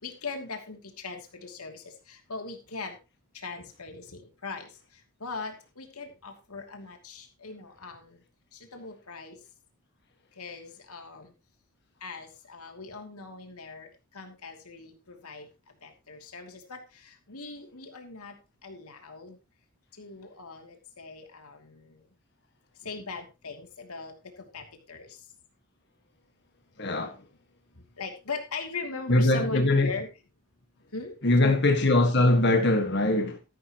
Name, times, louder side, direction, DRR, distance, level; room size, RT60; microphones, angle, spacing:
voice 1, 0.0-2.9 3.3-4.7 5.2-8.2 8.7-9.4 10.4-11.3 12.0-13.9 14.1-15.4 15.8-16.8 17.3-18.3 18.6-19.3 20.0-21.9 22.8-25.1 28.0-30.1 30.9-31.1 31.4-31.6, left 4 dB, 90° left, 2.7 m, -40 dB
voice 2, 26.8-27.1 29.1-29.9 31.2-33.4, left 2 dB, 50° left, 1.7 m, -22 dB
13.5 x 11.5 x 3.0 m
head